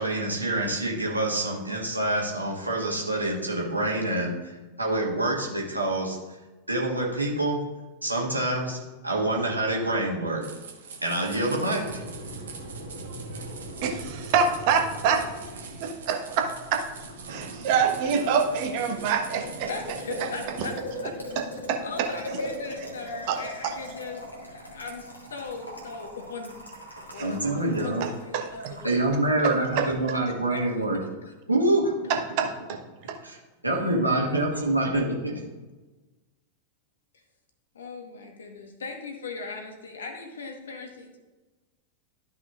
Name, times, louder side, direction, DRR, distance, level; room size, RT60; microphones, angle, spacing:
voice 1, 0.0-4.5 4.8-6.2 6.7-7.6 8.0-8.8 9.0-10.4 11.0-12.0 27.2-28.0 28.8-31.0 31.5-31.9 33.2-33.4 33.6-35.3, right 2 dB, 85° right, -2 dB, 1.6 m, -26 dB
sound 1, 10.4-20.7, right 5 dB, 65° right, 1.3 m, -44 dB
Boiling, 11.8-29.7, equal, 85° left, 1.9 m, -40 dB
voice 2, 13.0-13.4 13.8-15.3 15.8-16.9 17.3-19.7 21.4-22.1 23.3-23.7 27.1-27.3 28.3-28.7 29.4-29.9 32.1-32.8 33.1-33.2, right 6 dB, 45° right, 4 dB, 1.1 m, -26 dB
voice 3, 19.7-20.7 21.0-21.2 21.8-26.6 27.1-29.0 29.4-29.9 30.5-30.7 33.7-35.1 37.7-41.2, left 4 dB, 65° left, 4 dB, 1.3 m, -39 dB
13.0 x 5.6 x 2.4 m, 1.2 s
figure-of-eight pair, 90°, 0 cm